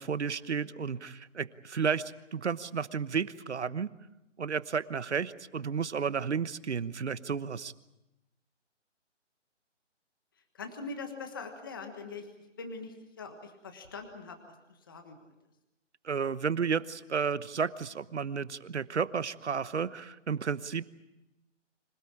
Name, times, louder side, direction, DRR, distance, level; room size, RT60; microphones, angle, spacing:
voice 1, 0.0-3.9 4.4-7.7 16.0-20.9, right 6 dB, 65° right, 15 dB, 1.1 m, -32 dB
voice 2, 10.5-12.3 12.6-14.4 14.7-15.2, left 4 dB, 20° left, 5 dB, 1.4 m, -42 dB
26.0 x 17.0 x 8.6 m, 0.93 s
hypercardioid pair, 180°, 37 cm